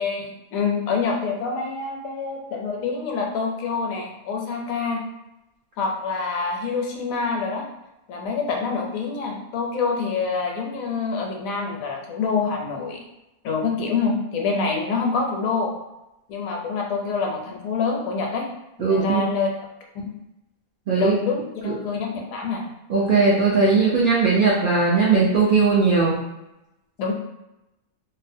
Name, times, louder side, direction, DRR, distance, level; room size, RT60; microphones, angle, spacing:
voice 1, 0.0-5.0 5.8-7.6 8.1-13.0 13.4-15.7 16.3-18.5 18.8-19.5 19.9-20.1 21.0-22.7 27.0-27.1, left 4 dB, 75° left, 0 dB, 1.0 m, -26 dB
voice 2, 18.8-19.2 20.9-21.2 21.6-21.7 22.9-26.2, right 4 dB, 80° right, -5 dB, 0.4 m, -19 dB
2.6 x 2.1 x 2.5 m, 0.94 s
omnidirectional pair, 1.5 m